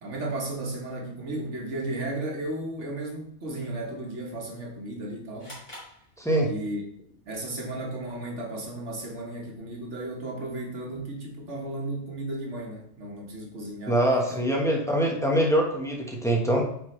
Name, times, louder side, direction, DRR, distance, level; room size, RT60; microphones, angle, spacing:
voice 1, 0.0-5.6 6.4-6.8 7.3-14.4, right 2 dB, 75° right, 0 dB, 1.7 m, -34 dB
sound 1, 5.4-6.8, left 1 dB, 35° left, 2.8 m, -47 dB
voice 2, 6.2-6.5 13.9-16.6, right 1 dB, 5° left, -1 dB, 1.1 m, -24 dB
8.2 x 4.7 x 3.2 m, 0.71 s
omnidirectional pair, 1.2 m